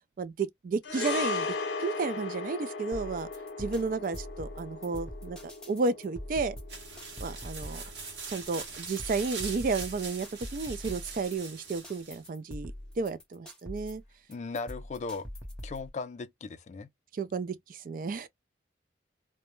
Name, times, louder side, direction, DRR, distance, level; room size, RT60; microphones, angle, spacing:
voice 1, 0.2-1.6 1.8-3.3 3.6-5.4 5.7-6.6 7.2-7.8 8.3-10.3 10.5-14.0 17.1-18.3, right 4 dB, 50° right, 0.3 m, -32 dB
sound 1, 0.8-9.3 9.6-9.8, left 4 dB, 85° left, 0.6 m, -38 dB
sound 2, 2.9-15.9, equal, 5° left, 0.7 m, -43 dB
sound 3, 6.7-12.3, right 5 dB, 80° right, 0.8 m, -42 dB
voice 2, 14.3-15.3 15.6-16.9, left 4 dB, 40° left, 0.3 m, -37 dB
2.1 x 2.0 x 2.9 m
head